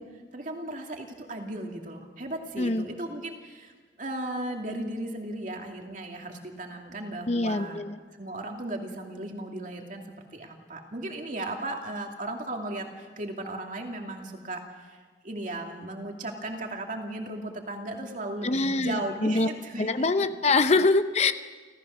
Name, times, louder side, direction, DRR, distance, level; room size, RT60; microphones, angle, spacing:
voice 1, 0.3-7.8 8.2-19.9 20.2-20.3, right 1 dB, 45° right, 2 dB, 2.6 m, -36 dB
voice 2, 7.3-8.0 18.4-19.5 19.8-21.3, left 3 dB, 35° left, 11 dB, 0.6 m, -24 dB
29.5 x 14.5 x 6.5 m, 1.5 s
head